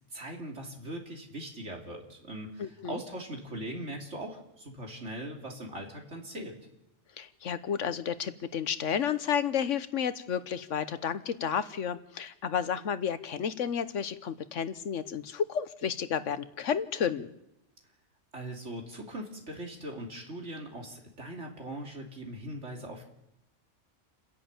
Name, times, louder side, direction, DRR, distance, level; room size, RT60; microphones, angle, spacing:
voice 1, 0.1-6.6 18.3-23.1, right 1 dB, 70° right, 1 dB, 3.4 m, -40 dB
voice 2, 2.6-3.0 7.2-17.3, left 8 dB, 90° left, 13 dB, 1.3 m, -31 dB
29.0 x 10.5 x 8.7 m, 0.85 s
omnidirectional pair, 1.2 m